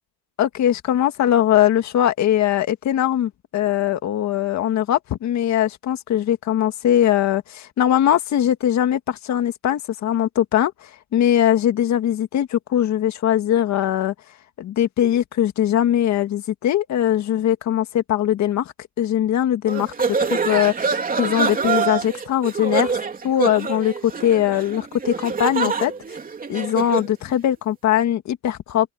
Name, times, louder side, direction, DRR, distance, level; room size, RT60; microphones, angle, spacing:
voice 1, 0.4-14.1 14.6-25.9 26.5-28.9, left 11 dB, 50° left, 1.9 m, -21 dB
sound 1, 19.7-27.1, right 5 dB, 25° right, 3.0 m, -25 dB
open air
cardioid pair, 140°, 36 cm